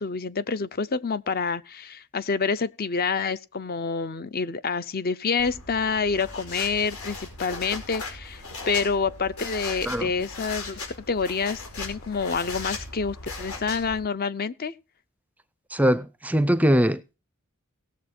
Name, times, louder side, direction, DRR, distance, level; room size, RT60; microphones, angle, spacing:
voice 1, 0.0-14.7, left 5 dB, 45° left, 0.6 m, -28 dB
sound 1, 5.4-14.0, left 3 dB, 85° left, 4.9 m, -38 dB
voice 2, 15.7-17.1, equal, 5° right, 0.5 m, -22 dB
18.0 x 7.0 x 4.3 m
head